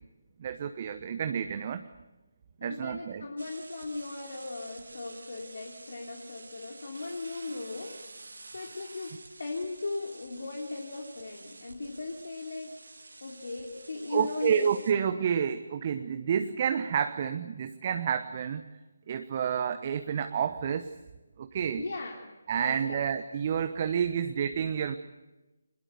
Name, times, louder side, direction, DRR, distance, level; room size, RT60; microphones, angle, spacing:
voice 1, 0.4-1.9 2.6-3.3 14.1-18.6 19.1-20.9 21.4-21.8 22.5-24.9, right 7 dB, 35° right, 9 dB, 1.0 m, -29 dB
voice 2, 2.6-7.9 8.5-12.7 13.2-14.7 21.8-22.3 22.5-23.1, left 3 dB, 60° left, 0 dB, 3.2 m, -38 dB
sound 1, 3.4-14.9, right 3 dB, 70° right, 2.7 m, -50 dB
24.5 x 21.5 x 8.2 m, 1.1 s
figure-of-eight pair, 150°, 0 cm